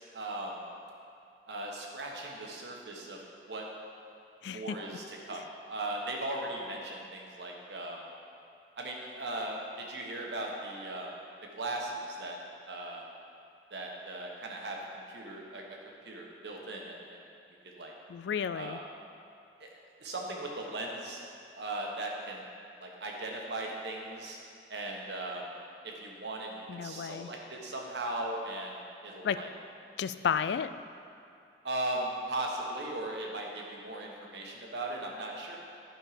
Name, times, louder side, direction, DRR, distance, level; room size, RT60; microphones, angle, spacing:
voice 1, 0.1-0.6 1.5-3.2 3.5-3.7 4.5-8.0 8.8-11.1 11.5-12.4 12.7-13.0 13.7-15.8 16.0-17.2 17.6-17.9 18.5-18.8 19.6-19.7 20.0-21.2 21.6-22.5 22.8-24.4 24.7-25.5 25.8-29.5 31.6-35.6, right 1 dB, 80° right, -1 dB, 1.3 m, -38 dB
voice 2, 18.1-18.8 26.7-27.3 29.2-29.4 30.0-30.7, left 7 dB, 80° left, 13 dB, 0.3 m, -32 dB
11.0 x 5.5 x 5.0 m, 2.6 s
head